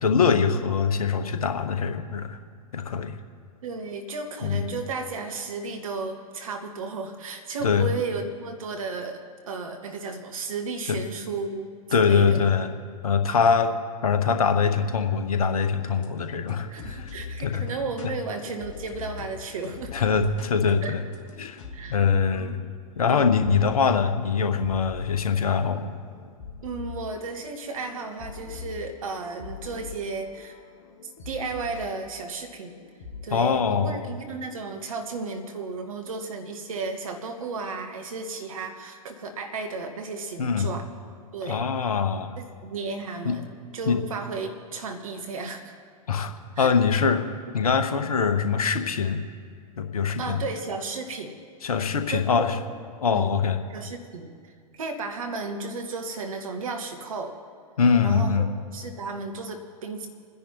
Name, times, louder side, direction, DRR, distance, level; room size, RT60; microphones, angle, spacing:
voice 1, 0.0-2.4 2.7-3.1 4.4-4.7 7.6-7.9 10.9-11.0 11.9-12.7 13.0-13.7 14.0-17.1 17.4-17.6 19.9-21.0 21.4-21.6 21.9-22.6 23.0-25.9 33.3-34.1 40.4-40.7 41.5-42.3 43.2-43.4 43.9-44.0 46.1-47.3 47.5-49.2 49.8-50.4 51.6-52.6 53.0-53.6 57.8-58.5, left 6 dB, 65° left, 7 dB, 1.1 m, -23 dB
voice 2, 3.6-12.4 16.7-19.9 20.8-21.0 21.7-22.0 22.3-22.5 26.6-30.6 31.2-32.7 33.2-40.9 41.3-41.6 42.4-43.5 43.7-45.7 46.6-46.7 50.2-51.4 51.8-52.5 53.1-53.3 53.7-54.3 54.8-57.4 58.0-58.5 58.7-60.1, right 3 dB, 60° right, 4 dB, 1.7 m, -34 dB
sound 1, 16.0-33.2, left 5 dB, 50° left, 1.6 m, -43 dB
29.0 x 10.5 x 3.0 m, 2.1 s
figure-of-eight pair, 105°, 20 cm